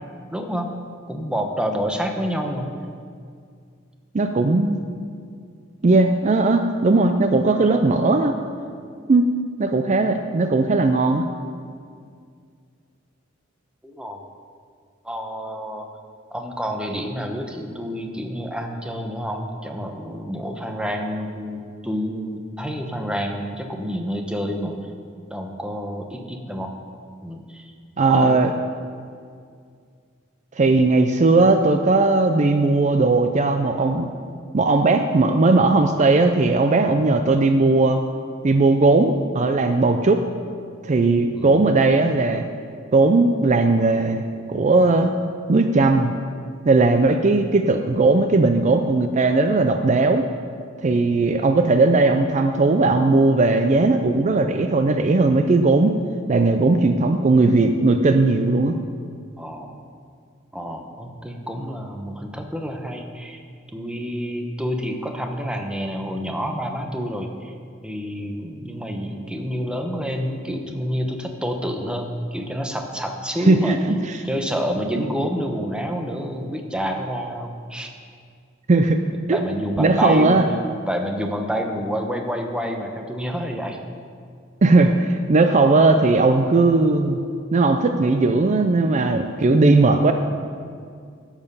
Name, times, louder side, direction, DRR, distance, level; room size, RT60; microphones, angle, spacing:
voice 1, 0.3-0.7 1.1-2.7 13.8-14.2 15.0-15.9 16.3-24.7 25.3-26.7 27.2-27.7 28.0-28.4 41.3-41.6 59.4-59.8 60.5-63.4 63.7-67.5 67.8-73.8 74.2-77.9 79.3-80.4 80.9-83.8, equal, 5° right, 3 dB, 0.8 m, -28 dB
voice 2, 4.1-4.8 5.8-8.3 9.1-9.3 9.6-11.3 28.0-28.5 30.6-34.1 34.5-38.0 38.4-40.2 40.8-42.5 42.9-44.2 44.5-45.1 45.5-46.1 46.7-50.3 50.8-55.9 56.3-58.8 73.4-74.2 74.9-75.0 78.7-79.0 79.3-79.4 79.8-80.5 84.6-87.2 87.5-90.1, right 3 dB, 35° right, 6 dB, 0.4 m, -18 dB
12.0 x 7.3 x 5.5 m, 2.2 s
head